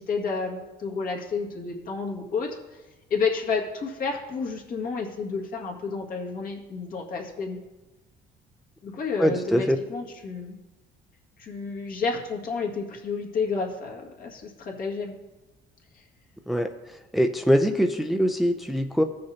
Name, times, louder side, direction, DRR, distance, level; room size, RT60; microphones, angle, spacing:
voice 1, 0.0-2.8 3.1-7.6 8.8-10.6 11.4-15.2 15.9-16.0, left 4 dB, 60° left, 0 dB, 1.9 m, -30 dB
voice 2, 9.2-9.8 16.5-16.7 17.1-19.0, equal, ahead, 5 dB, 0.5 m, -22 dB
16.0 x 6.5 x 2.8 m, 1.1 s
cardioid pair, 110°, 17 cm